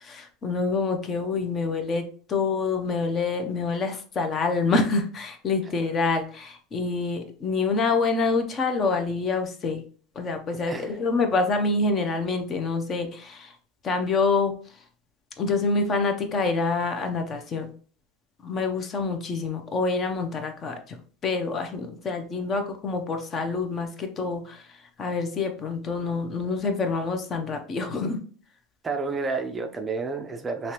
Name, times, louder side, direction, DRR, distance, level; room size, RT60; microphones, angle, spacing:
voice 1, 0.0-2.0 2.3-9.8 10.2-13.5 13.8-14.5 15.4-17.7 18.4-21.0 21.2-24.6 25.0-28.2, left 4 dB, 30° left, 6 dB, 0.6 m, -26 dB
voice 2, 10.7-11.0 28.8-30.7, right 4 dB, 20° right, 6 dB, 0.4 m, -30 dB
3.2 x 2.9 x 2.9 m, 0.43 s
supercardioid pair, 130°, 0 cm